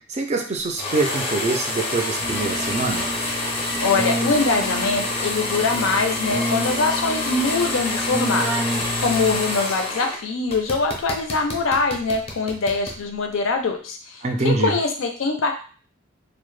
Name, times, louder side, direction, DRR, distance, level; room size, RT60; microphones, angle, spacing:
voice 1, 0.1-3.2 14.2-14.8, right 3 dB, 35° right, 3 dB, 0.3 m, -24 dB
sound 1, 0.8-10.2 10.5-13.0, left 2 dB, 30° left, 0.4 m, -27 dB
Keyboard (musical), 2.2-9.7, right 1 dB, 75° right, 0.6 m, -30 dB
voice 2, 3.8-8.5 9.0-15.5, left 3 dB, 90° left, 4 dB, 0.4 m, -23 dB
2.1 x 2.0 x 3.1 m, 0.42 s
head